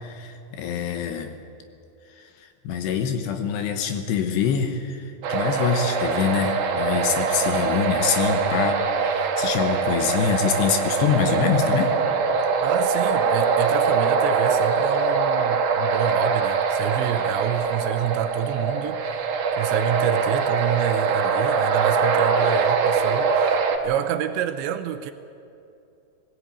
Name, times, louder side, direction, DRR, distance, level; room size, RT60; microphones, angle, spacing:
voice 1, 0.0-1.3 2.2-2.3 2.6-11.9, left 7 dB, 70° left, 3.0 m, -25 dB
sound 1, 5.2-23.8, right 5 dB, 65° right, 2.2 m, -23 dB
voice 2, 12.6-19.0 19.6-23.6 23.8-25.1, right 11 dB, 80° right, 2.9 m, -28 dB
20.5 x 17.5 x 8.7 m
omnidirectional pair, 5.5 m